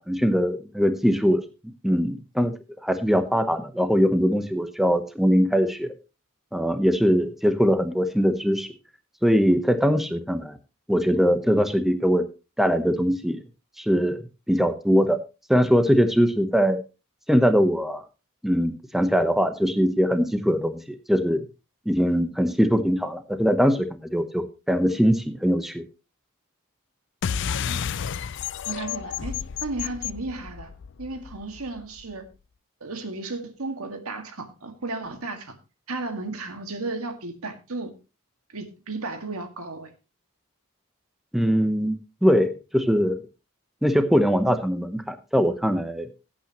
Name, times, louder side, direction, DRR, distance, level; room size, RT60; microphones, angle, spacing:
voice 1, 0.0-1.4 1.8-2.5 2.8-5.9 6.5-8.7 9.2-10.6 10.9-12.2 12.6-13.4 13.8-14.2 14.5-15.2 15.5-16.8 17.3-18.0 18.4-21.4 21.9-25.8 41.3-42.0 42.2-43.2 43.8-46.1, equal, ahead, 8 dB, 0.9 m, -21 dB
sound 1, 27.2-32.1, left 8 dB, 55° left, 0.4 m, -31 dB
voice 2, 28.7-30.7 31.0-32.3 32.8-35.6 35.9-37.9 38.5-39.9, right 3 dB, 85° right, 7 dB, 1.9 m, -34 dB
16.5 x 8.6 x 3.0 m, 0.29 s
head